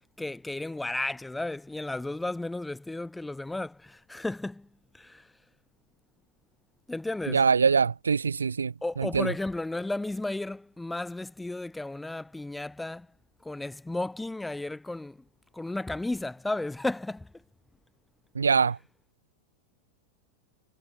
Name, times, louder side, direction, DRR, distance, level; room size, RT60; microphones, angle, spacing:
voice 1, 0.2-4.7 4.9-5.2 6.9-7.4 8.8-13.1 13.4-15.2 15.5-17.3, left 2 dB, 5° left, 5.8 m, -33 dB
voice 2, 7.3-8.7 9.1-9.3 18.4-18.8, right 5 dB, 75° right, 1.5 m, -23 dB
figure-of-eight pair, 90°, 0 cm